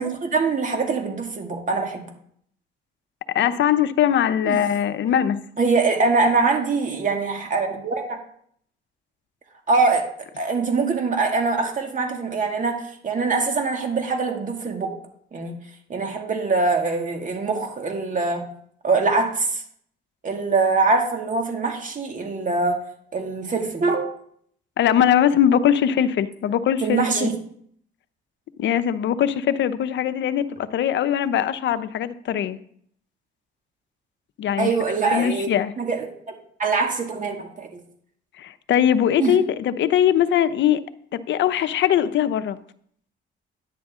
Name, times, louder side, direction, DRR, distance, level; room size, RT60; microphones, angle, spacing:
voice 1, 0.0-2.1 4.4-4.6 5.6-8.2 9.7-14.9 15.3-15.5 15.9-18.5 18.8-19.6 20.2-22.8 23.1-24.1 26.8-27.3 34.6-35.5 35.8-37.8 39.2-39.4, right 4 dB, 40° right, 3 dB, 2.2 m, -23 dB
voice 2, 3.3-5.4 24.8-27.3 28.6-32.6 34.4-34.7 35.0-35.7 38.4-40.8 41.1-42.6, left 9 dB, 65° left, 12 dB, 0.7 m, -21 dB
10.5 x 9.3 x 3.7 m, 0.64 s
cardioid pair, 90°, 20 cm